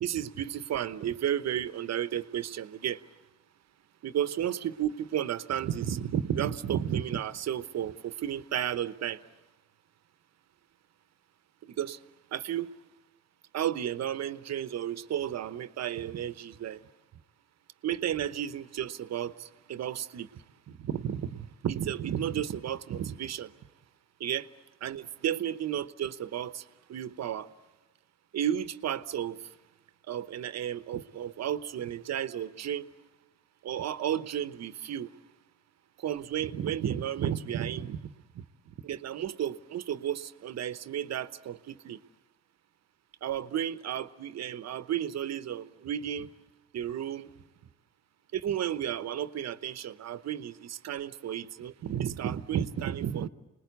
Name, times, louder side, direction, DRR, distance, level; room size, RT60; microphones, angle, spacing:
voice 1, 0.0-3.1 4.0-9.2 11.6-12.0 12.3-12.7 13.5-16.8 17.8-23.5 24.2-24.5 24.8-27.5 28.3-29.5 30.1-32.9 33.6-35.1 36.0-38.1 38.3-38.4 38.8-42.0 43.2-46.3 46.7-47.3 48.3-53.3, right 10 dB, 60° right, 1.0 m, -33 dB
28.0 x 20.5 x 8.2 m
cardioid pair, 90°, 30 cm